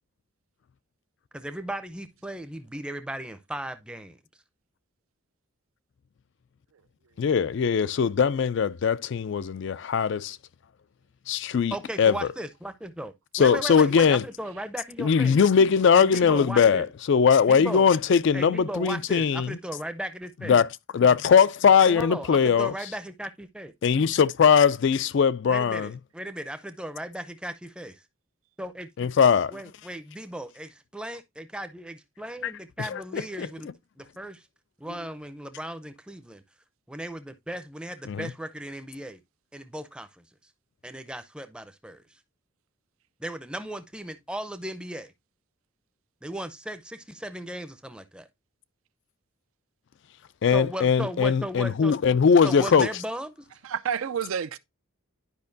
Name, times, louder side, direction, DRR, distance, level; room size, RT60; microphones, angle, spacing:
voice 1, 1.3-4.2 11.7-13.1 13.4-15.4 15.9-16.9 17.5-17.9 18.3-20.6 21.8-23.7 25.5-28.0 28.6-28.9 29.5-33.7 34.0-34.5 34.8-36.4 36.9-39.2 39.5-40.2 40.8-42.0 43.2-45.1 46.2-48.3 50.5-52.0 52.4-53.5, right 1 dB, 5° right, 0.5 m, -36 dB
voice 2, 7.2-10.4 11.3-12.2 13.3-14.2 15.0-19.6 20.5-20.7 20.9-22.7 23.8-25.9 29.0-29.5 32.4-32.5 32.8-33.5 38.1-38.3 50.4-52.9, left 6 dB, 55° left, 0.3 m, -21 dB
voice 3, 53.6-54.6, right 7 dB, 75° right, 0.5 m, -30 dB
10.5 x 5.2 x 2.6 m
head